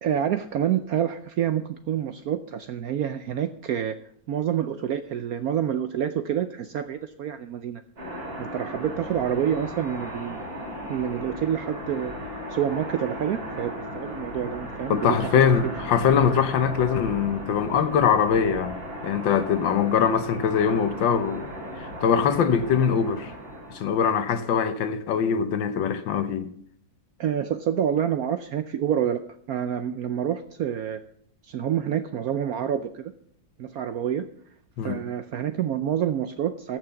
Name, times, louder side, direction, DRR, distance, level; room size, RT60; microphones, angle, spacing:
voice 1, 0.0-4.0 4.3-7.8 8.4-10.4 10.9-12.1 12.5-15.4 27.2-29.2 29.5-31.0 31.4-33.1 33.6-34.3 34.8-36.8, right 9 dB, 70° right, 0.9 m, -27 dB
sound 1, 8.0-24.0, equal, 50° right, 3.8 m, -36 dB
voice 2, 14.9-18.8 19.0-21.4 21.8-23.3 23.7-26.5 34.8-35.0, left 7 dB, 80° left, 1.6 m, -22 dB
14.5 x 6.0 x 6.9 m
omnidirectional pair, 2.1 m